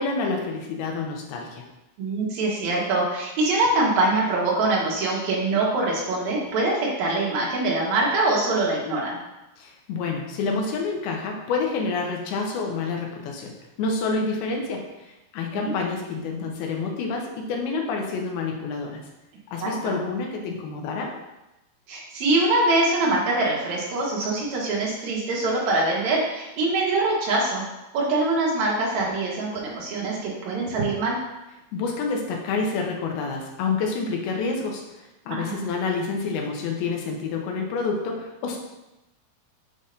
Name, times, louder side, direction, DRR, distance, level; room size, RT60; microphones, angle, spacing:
voice 1, 0.0-1.6 9.6-14.9 15.3-19.1 19.5-21.1 31.7-38.6, left 4 dB, 80° left, 1 dB, 2.8 m, -28 dB
voice 2, 2.0-9.2 15.5-15.7 19.6-20.0 21.9-27.7 27.9-31.2 35.3-35.6, right 2 dB, 60° right, -4 dB, 2.1 m, -24 dB
7.4 x 2.7 x 5.1 m, 0.98 s
omnidirectional pair, 4.5 m